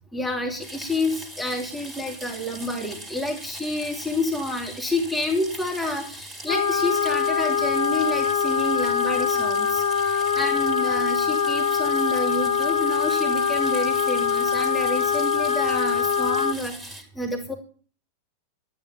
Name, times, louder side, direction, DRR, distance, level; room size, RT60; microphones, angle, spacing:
voice 1, 0.1-17.5, left 1 dB, 5° left, 0 dB, 2.7 m, -29 dB
sound 1, 0.6-17.0, right 1 dB, 20° right, 4.1 m, -41 dB
sound 2, 6.5-16.5, left 7 dB, 60° left, 1.5 m, -23 dB
13.0 x 10.0 x 7.0 m, 0.42 s
figure-of-eight pair, 90°, 0 cm